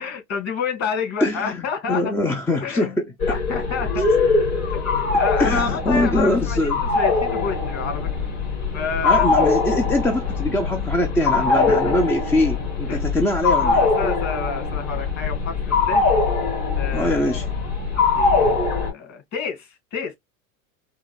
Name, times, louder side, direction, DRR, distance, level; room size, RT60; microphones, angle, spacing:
voice 1, 0.0-2.1 2.6-2.9 3.3-4.1 4.7-4.8 5.2-8.1 8.7-9.3 11.3-12.0 12.9-13.0 13.6-16.0 16.8-17.5 18.2-18.6 18.9-20.2, left 5 dB, 40° left, 2.2 m, -29 dB
voice 2, 1.2-3.0 5.4-6.8 9.0-13.9 16.9-17.4, left 1 dB, 5° left, 0.3 m, -22 dB
sound 1, 3.2-18.9, left 4 dB, 80° left, 2.4 m, -22 dB
4.6 x 2.5 x 2.3 m
hypercardioid pair, 95°, 42 cm